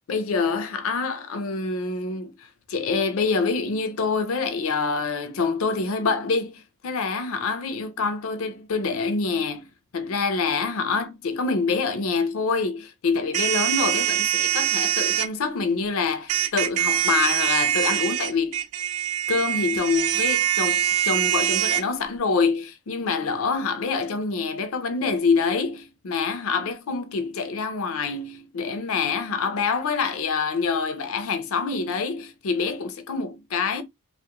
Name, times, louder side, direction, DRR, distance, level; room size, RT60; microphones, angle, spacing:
voice 1, 0.1-2.3 2.7-18.6 19.3-33.8, left 4 dB, 70° left, 0.4 m, -26 dB
sound 1, 13.3-15.3 16.3-21.8, right 11 dB, 85° right, 0.3 m, -23 dB
2.4 x 2.0 x 2.8 m
head